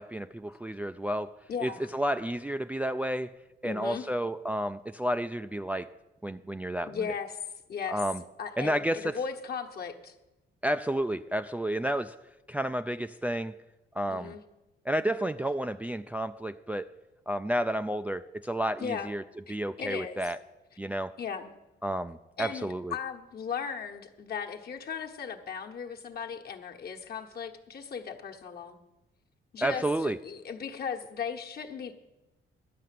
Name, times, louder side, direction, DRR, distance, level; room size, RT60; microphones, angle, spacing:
voice 1, 0.0-3.3 3.6-5.9 6.2-7.1 7.9-8.2 8.6-9.2 10.6-12.2 12.5-13.5 14.0-14.3 14.9-16.9 17.3-19.2 19.5-20.4 20.8-21.2 21.8-23.0 29.6-30.2, right 1 dB, 5° right, 8 dB, 0.3 m, -31 dB
voice 2, 1.5-1.9 3.6-4.1 6.9-7.4 7.7-8.0 8.4-10.1 14.1-14.4 18.8-19.1 19.5-20.3 21.2-21.5 22.4-28.8 29.5-31.9, left 6 dB, 50° left, 3 dB, 1.3 m, -37 dB
12.0 x 5.7 x 9.2 m, 1.0 s
cardioid pair, 90°, 20 cm